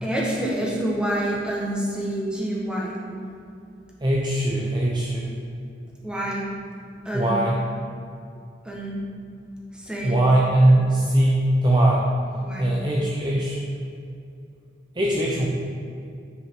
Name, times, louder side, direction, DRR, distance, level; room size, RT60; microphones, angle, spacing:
voice 1, 0.0-3.0 6.0-6.5 7.0-7.3 8.6-9.0 9.7-10.2 12.4-12.7, right 1 dB, 5° right, -5 dB, 1.3 m, -27 dB
voice 2, 4.0-5.3 7.1-7.6 10.0-12.0 12.6-13.6 15.0-15.5, right 1 dB, 25° right, -4 dB, 0.7 m, -20 dB
9.6 x 5.0 x 3.7 m, 2.5 s
head